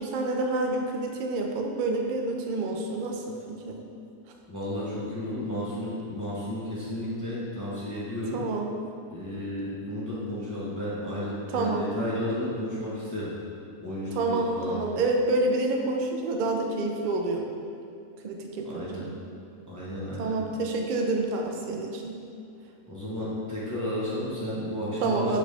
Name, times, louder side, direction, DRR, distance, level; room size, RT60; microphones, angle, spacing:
voice 1, 0.0-3.8 8.3-8.7 11.5-11.9 14.1-17.4 18.2-19.1 20.2-22.2 25.0-25.4, right 2 dB, 85° right, 2 dB, 0.4 m, -28 dB
voice 2, 4.5-8.5 9.1-13.4 13.8-14.8 18.6-19.1 19.7-20.4 22.9-25.4, left 1 dB, 15° left, -8 dB, 0.9 m, -32 dB
6.1 x 4.9 x 3.4 m, 2.5 s
omnidirectional pair, 1.6 m